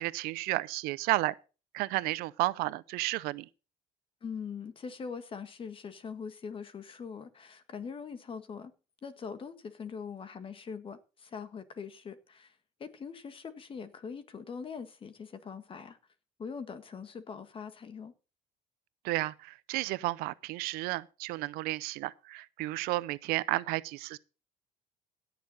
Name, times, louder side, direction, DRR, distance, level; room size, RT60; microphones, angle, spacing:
voice 1, 0.0-1.3 1.7-3.5 19.0-24.2, right 19 dB, 80° right, 0.7 m, -32 dB
voice 2, 4.2-8.7 9.0-12.5 12.8-16.0 16.4-18.1, left 6 dB, 35° left, 1.6 m, -42 dB
17.0 x 6.9 x 4.1 m
cardioid pair, 105°, 16 cm